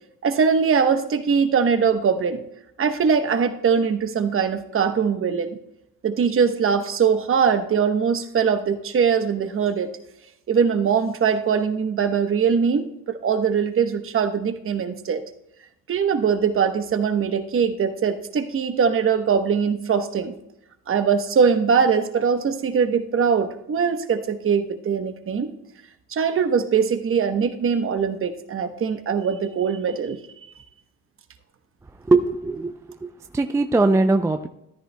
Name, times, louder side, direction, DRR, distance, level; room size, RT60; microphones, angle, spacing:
voice 1, 0.2-2.4 2.8-5.6 6.0-9.9 10.5-15.2 15.9-20.3 20.9-25.5 26.1-30.2, right 6 dB, 40° right, 8 dB, 1.0 m, -21 dB
voice 2, 32.0-32.7 33.0-33.1 33.3-34.5, right 3 dB, 10° right, 7 dB, 0.4 m, -20 dB
13.5 x 10.5 x 2.2 m, 0.82 s
cardioid pair, 90°, 32 cm